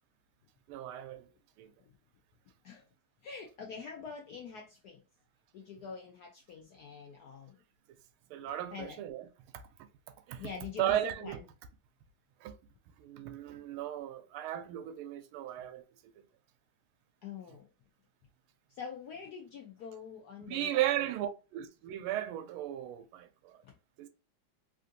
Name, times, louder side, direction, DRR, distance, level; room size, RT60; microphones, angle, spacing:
voice 1, 0.7-1.3 1.6-1.7 8.3-9.3 9.5-9.6 10.3-10.5 10.8-11.4 12.4-12.6 13.0-15.8 16.2-16.3 20.5-23.6 24.0-24.1, right 12 dB, 90° right, 1.4 m, -35 dB
voice 2, 3.2-5.0 5.5-7.6 8.7-9.0 10.4-11.4 17.2-17.7 18.7-20.8 23.6-23.7, left 6 dB, 75° left, 0.8 m, -45 dB
3.6 x 2.5 x 2.6 m
omnidirectional pair, 2.3 m